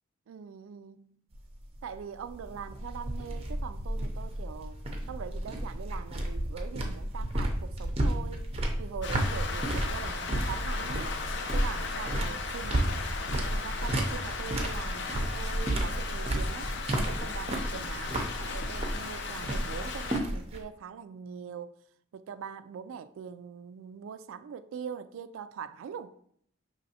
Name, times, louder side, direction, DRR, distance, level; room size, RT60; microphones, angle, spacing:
voice 1, 0.3-1.3 1.8-4.8 5.1-8.5 8.8-11.2 11.5-21.8 22.1-26.1, right 7 dB, 80° right, 0.3 m, -42 dB
sound 1, 1.3-20.6, right 1 dB, 30° right, 0.5 m, -32 dB
Rain, 9.0-20.2, left 4 dB, 60° left, 0.5 m, -37 dB
5.3 x 3.1 x 2.7 m
head